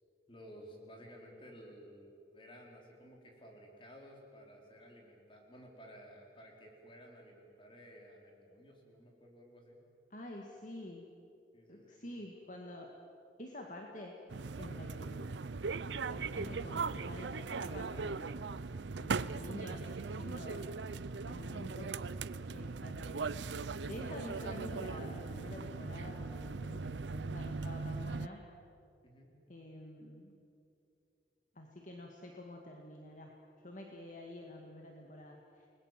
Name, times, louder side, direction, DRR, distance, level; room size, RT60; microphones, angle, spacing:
voice 1, 0.3-9.8 11.5-12.0 29.0-29.3, equal, 30° left, 0 dB, 4.5 m, -55 dB
voice 2, 10.1-11.1 11.7-12.9 13.4-14.2 14.6-15.4 16.1-18.6 19.0-20.7 21.3-22.0 22.5-23.4 23.8-28.4 29.5-30.4 31.6-33.4 33.6-35.7, left 1 dB, 45° left, 1 dB, 2.1 m, -48 dB
sound 1, 14.3-28.3, right 4 dB, 85° right, 0.6 m, -39 dB
29.5 x 20.5 x 7.6 m, 2.6 s
head